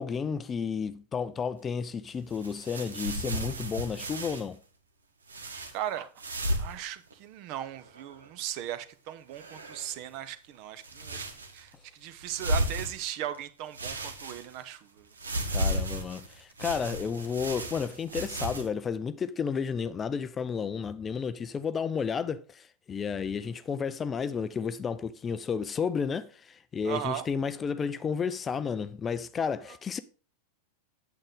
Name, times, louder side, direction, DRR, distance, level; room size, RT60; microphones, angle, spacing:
voice 1, 0.0-4.6 15.5-30.0, left 6 dB, 20° left, 0.4 m, -32 dB
sound 1, 2.3-4.5 5.3-5.7 6.2-6.8 7.1-7.2 7.7-8.3 9.3-10.0 10.8-11.7 12.2-13.4 13.7-14.7 15.2-18.7, right 1 dB, 75° right, 1.0 m, -34 dB
voice 2, 5.7-6.1 6.6-11.2 11.5-15.1 15.9-16.0 26.8-27.2, right 11 dB, 45° right, 0.7 m, -37 dB
8.7 x 7.5 x 3.6 m
figure-of-eight pair, 90°, 0 cm